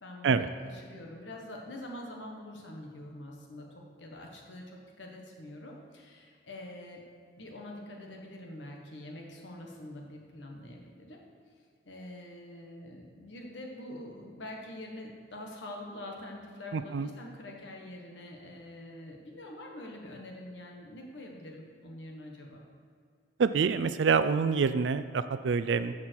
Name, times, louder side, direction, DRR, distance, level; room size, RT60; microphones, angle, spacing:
voice 1, 0.0-7.0 7.4-11.5 11.8-22.6, left 1 dB, 90° left, 0 dB, 1.4 m, -45 dB
voice 2, 16.7-17.1 23.4-25.9, right 5 dB, 75° right, 12 dB, 0.4 m, -26 dB
13.0 x 7.4 x 4.6 m, 2.1 s
head